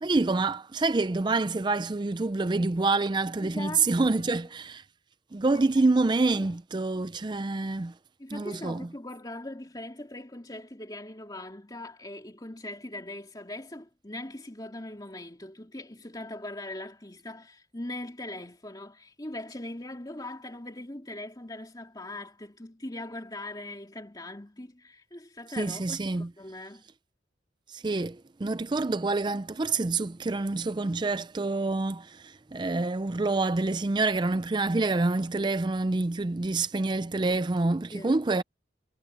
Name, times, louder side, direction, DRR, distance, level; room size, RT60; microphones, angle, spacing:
voice 1, 0.0-4.8 5.3-7.9 8.3-8.9 25.6-26.3 27.7-38.4, right 3 dB, 25° right, 0.4 m, -27 dB
voice 2, 3.4-3.9 4.2-4.4 5.5-5.8 6.4-6.6 8.2-26.8 37.9-38.2, left 1 dB, 20° left, 2.7 m, -41 dB
head